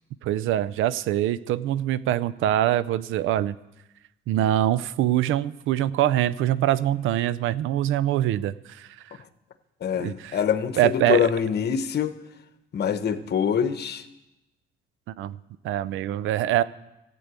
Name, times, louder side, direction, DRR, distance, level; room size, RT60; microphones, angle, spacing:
voice 1, 0.2-3.5 4.3-8.9 10.0-10.4 10.8-11.3 15.2-15.4 15.6-16.6, right 12 dB, 85° right, 16 dB, 0.5 m, -24 dB
voice 2, 9.8-12.1 12.7-14.0, left 8 dB, 55° left, 10 dB, 1.1 m, -25 dB
14.0 x 8.4 x 8.2 m, 0.94 s
cardioid pair, 90°, 20 cm